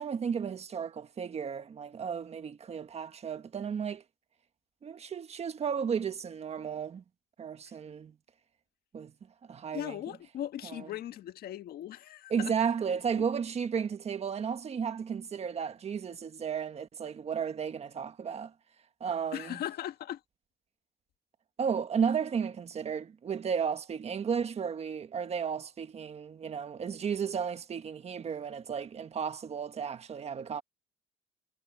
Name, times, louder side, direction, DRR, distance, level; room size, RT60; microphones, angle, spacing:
voice 1, 0.0-4.0 4.8-7.0 7.4-8.1 8.9-9.1 9.5-10.0 10.6-10.9 12.3-18.5 19.0-19.6 21.6-30.6, right 7 dB, 40° right, 1.5 m, -33 dB
voice 2, 9.7-12.5 13.2-13.3 19.3-20.2, left 12 dB, 65° left, 1.5 m, -38 dB
cardioid pair, 110°, 17 cm